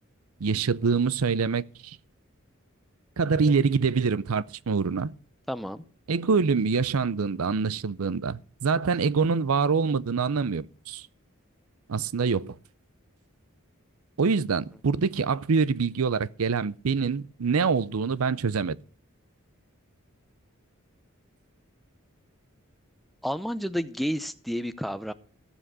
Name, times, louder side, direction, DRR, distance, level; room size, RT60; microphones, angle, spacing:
voice 1, 0.4-2.0 3.2-5.1 6.1-11.0 11.9-12.5 14.2-18.8, right 5 dB, 90° right, 0.6 m, -25 dB
voice 2, 5.5-5.8 23.2-25.1, equal, ahead, 0.6 m, -30 dB
14.5 x 7.5 x 6.2 m
head